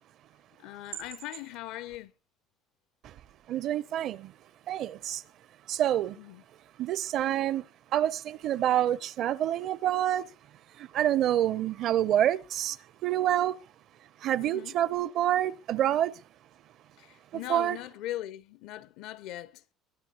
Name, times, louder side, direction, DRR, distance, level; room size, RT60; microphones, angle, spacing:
voice 1, 0.6-2.1 6.2-6.4 14.4-14.8 17.0-19.6, left 14 dB, 75° left, 0.7 m, -40 dB
voice 2, 3.5-4.3 4.7-5.2 5.7-6.2 6.8-7.6 7.9-10.3 10.8-12.8 13.0-13.6 14.2-16.1 17.5-17.8, right 11 dB, 60° right, 0.7 m, -27 dB
22.0 x 10.5 x 2.9 m
cardioid pair, 120°, 0 cm